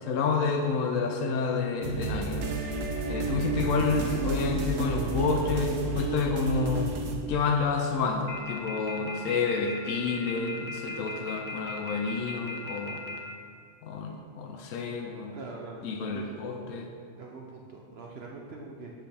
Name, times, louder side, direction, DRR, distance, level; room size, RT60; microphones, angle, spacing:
voice 1, 0.0-2.5 3.1-6.9 7.3-13.0 13.8-15.4 15.8-16.9, left 5 dB, 80° left, 2 dB, 1.0 m, -29 dB
sound 1, 1.8-7.2, right 3 dB, 85° right, 1.2 m, -31 dB
sound 2, 8.3-13.2, left 2 dB, 45° left, 0.7 m, -37 dB
voice 2, 15.3-15.8 16.1-16.3 17.2-18.9, right 3 dB, 60° right, -1 dB, 0.9 m, -43 dB
7.7 x 6.5 x 3.4 m, 2.2 s
omnidirectional pair, 1.3 m